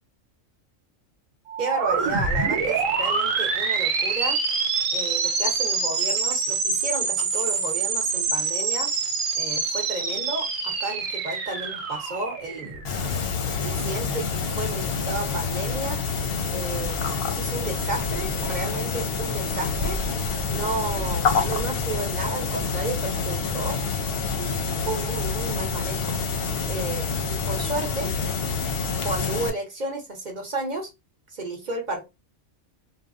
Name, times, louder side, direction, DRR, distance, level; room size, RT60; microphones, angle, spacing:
sound 1, 1.5-13.2, right 5 dB, 85° right, 1.2 m, -26 dB
voice 1, 1.6-4.4 4.9-8.9 9.3-12.8 13.4-16.0 16.5-20.0 20.5-23.8 24.4-26.3 26.7-28.1 29.0-30.9 31.3-32.1, right 2 dB, 40° right, 2 dB, 0.8 m, -32 dB
sound 2, 12.9-29.5, left 5 dB, 60° left, 0.7 m, -27 dB
3.3 x 2.1 x 2.4 m, 0.22 s
omnidirectional pair, 1.3 m